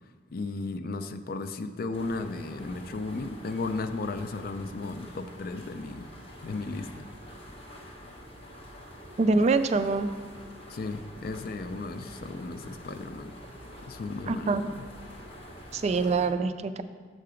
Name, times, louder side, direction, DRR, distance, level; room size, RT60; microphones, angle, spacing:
voice 1, 0.3-6.1 6.4-7.1 10.7-13.3 13.9-14.8, left 3 dB, 55° left, 10 dB, 0.4 m, -35 dB
sound 1, 1.9-16.3, equal, 35° left, 1.0 m, -46 dB
voice 2, 9.2-10.1 14.3-14.6 15.7-16.8, right 3 dB, 40° right, 10 dB, 0.3 m, -25 dB
6.6 x 5.7 x 5.0 m, 1.5 s
head